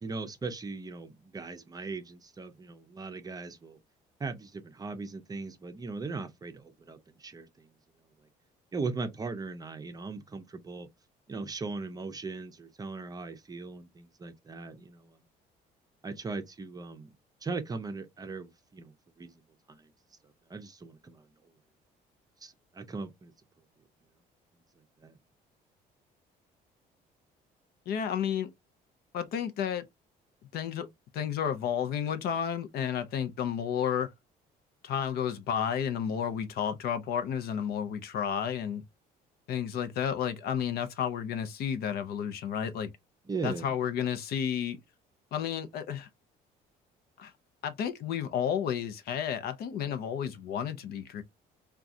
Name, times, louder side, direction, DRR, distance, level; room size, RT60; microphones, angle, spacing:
voice 1, 0.0-3.8 4.2-7.7 8.7-10.9 11.3-15.2 16.0-17.1 17.4-19.4 19.7-19.9 20.5-21.3 22.4-23.3 25.0-25.1 43.3-43.7, right 4 dB, 20° right, 0.6 m, -39 dB
voice 2, 27.9-28.5 29.1-29.9 30.5-30.9 31.1-34.1 34.8-38.8 39.5-42.9 43.4-44.8 45.3-46.1 47.2-47.3 47.6-51.2, left 8 dB, 65° left, 0.6 m, -31 dB
3.6 x 2.3 x 2.6 m
cardioid pair, 110°, 17 cm